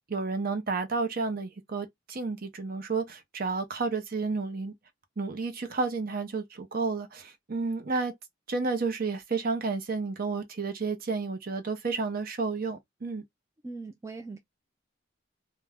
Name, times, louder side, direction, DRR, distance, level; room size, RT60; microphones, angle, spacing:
voice 1, 0.1-4.7 5.2-8.1 8.5-13.2, right 4 dB, 45° right, 0.7 m, -31 dB
voice 2, 13.6-14.4, right 3 dB, 15° right, 0.3 m, -40 dB
2.5 x 2.2 x 3.3 m
head